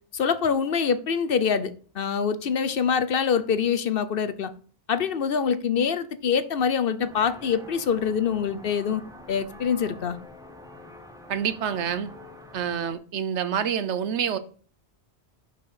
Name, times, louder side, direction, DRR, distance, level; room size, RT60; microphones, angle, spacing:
voice 1, 0.1-4.5 4.9-9.0 9.3-10.2, left 6 dB, 60° left, 0.8 m, -25 dB
sound 1, 7.0-12.9, left 1 dB, 5° right, 1.0 m, -46 dB
voice 2, 11.3-12.1 12.5-14.4, right 8 dB, 80° right, 1.1 m, -27 dB
6.6 x 5.6 x 4.9 m
omnidirectional pair, 1.2 m